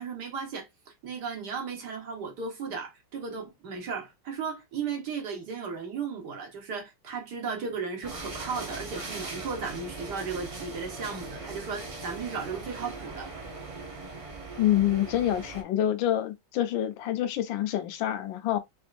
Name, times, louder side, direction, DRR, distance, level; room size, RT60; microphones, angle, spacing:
voice 1, 0.0-13.3, right 5 dB, 65° right, 1.9 m, -35 dB
sound 1, 8.0-15.6, right 3 dB, 45° right, 0.4 m, -40 dB
voice 2, 14.6-18.6, left 12 dB, 85° left, 1.4 m, -27 dB
4.3 x 3.5 x 2.5 m
omnidirectional pair, 2.0 m